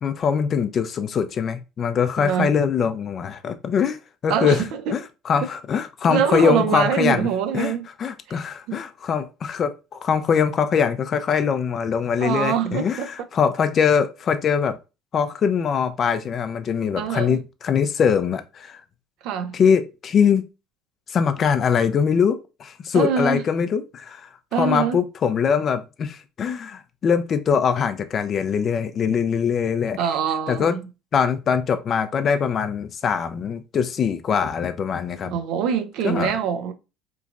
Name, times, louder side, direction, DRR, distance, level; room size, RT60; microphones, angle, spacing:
voice 1, 0.0-4.0 4.2-4.6 4.9-7.3 7.5-14.8 15.1-18.8 19.5-20.5 21.1-24.3 24.6-30.0 30.5-30.7 31.1-35.3 36.0-36.3, left 7 dB, 45° left, 0.4 m, -22 dB
voice 2, 2.2-2.5 4.3-4.8 6.1-7.9 8.3-8.4 8.7-8.8 12.2-13.1 17.0-17.4 19.2-19.5 22.9-23.4 24.5-25.0 30.0-30.8 35.2-36.7, right 7 dB, 65° right, 0.4 m, -24 dB
3.0 x 2.4 x 2.4 m
hypercardioid pair, 70°, 0 cm